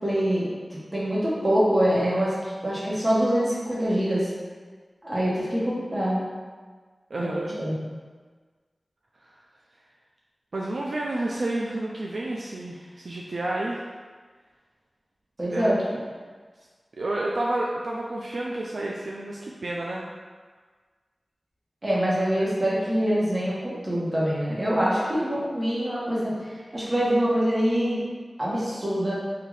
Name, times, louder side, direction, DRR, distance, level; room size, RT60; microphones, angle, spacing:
voice 1, 0.0-4.3 5.0-6.2 7.2-7.9 15.4-16.0 21.8-26.3 26.7-28.0 28.4-29.1, equal, 35° right, -7 dB, 1.3 m, -25 dB
voice 2, 7.1-7.6 10.5-13.8 15.5-15.7 17.0-20.1 25.3-25.4, right 1 dB, 75° right, -3 dB, 0.4 m, -30 dB
3.9 x 2.7 x 3.2 m, 1.5 s
wide cardioid pair, 55°, 0 cm